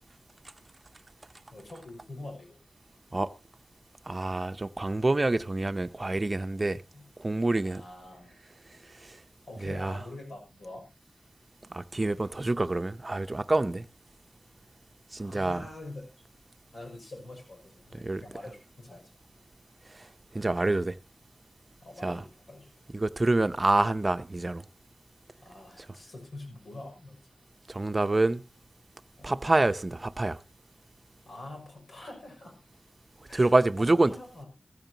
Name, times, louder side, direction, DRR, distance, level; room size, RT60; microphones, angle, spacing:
voice 1, 1.5-2.6 6.9-7.0 7.5-8.3 9.5-10.8 15.2-16.1 16.7-19.1 21.8-22.7 25.4-27.2 29.2-29.4 31.3-32.6 33.3-34.5, left 2 dB, 85° left, 5.9 m, -45 dB
voice 2, 4.1-6.8 7.2-7.8 9.0-9.2 9.6-10.0 11.7-13.9 15.1-15.7 17.9-18.2 20.3-20.9 22.0-22.2 22.9-24.6 27.7-28.4 29.2-30.4 33.3-34.1, right 2 dB, 35° right, 0.7 m, -27 dB
16.0 x 14.5 x 2.9 m
wide cardioid pair, 85°, 0 cm